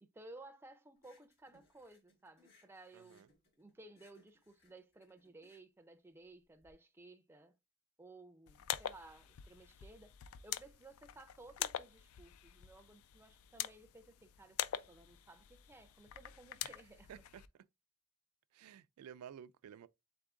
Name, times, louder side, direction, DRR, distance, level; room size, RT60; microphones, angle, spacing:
voice 1, 0.0-3.3 3.6-7.6 8.0-10.1 10.4-14.6 14.9-17.2, right 2 dB, 10° right, 0.4 m, -57 dB
sound 1, 1.0-6.7, left 3 dB, 50° left, 1.7 m, -71 dB
voice 2, 2.9-3.3 16.6-16.7 17.1-17.4 18.5-19.9, right 9 dB, 80° right, 0.3 m, -53 dB
sound 2, 8.5-17.5, left 11 dB, 70° left, 0.3 m, -45 dB
3.6 x 3.5 x 3.6 m
head